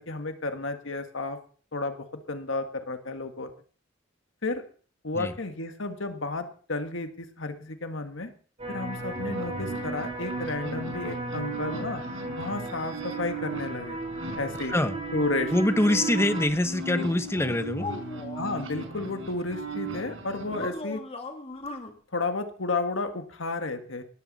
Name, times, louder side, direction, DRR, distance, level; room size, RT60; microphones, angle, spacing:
voice 1, 0.0-1.4 1.7-3.5 4.4-4.6 5.0-8.3 8.7-12.0 12.4-14.0 14.3-14.7 15.1-15.5 16.9-17.0 18.3-21.0 22.1-24.0, left 3 dB, 75° left, 7 dB, 1.7 m, -32 dB
sound 1, 8.6-16.5, right 1 dB, 35° right, 5.8 m, -36 dB
sound 2, 8.9-20.7, right 4 dB, 90° right, 4.5 m, -37 dB
voice 2, 15.5-17.9, left 1 dB, 15° left, 10 dB, 1.1 m, -24 dB
sound 3, 17.4-18.7 20.4-21.9, left 2 dB, 30° left, 2.0 m, -38 dB
17.5 x 14.0 x 4.2 m, 0.42 s
head